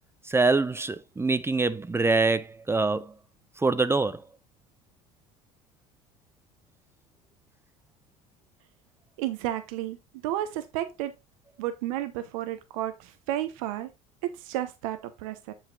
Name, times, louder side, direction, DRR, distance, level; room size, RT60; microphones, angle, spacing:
voice 1, 0.2-3.1 3.6-4.2, right 3 dB, 15° right, 0.5 m, -24 dB
voice 2, 9.2-10.0 10.2-11.1 11.6-13.9 14.2-15.5, right 13 dB, 80° right, 0.8 m, -32 dB
7.8 x 5.8 x 2.3 m
hypercardioid pair, 80°, 18 cm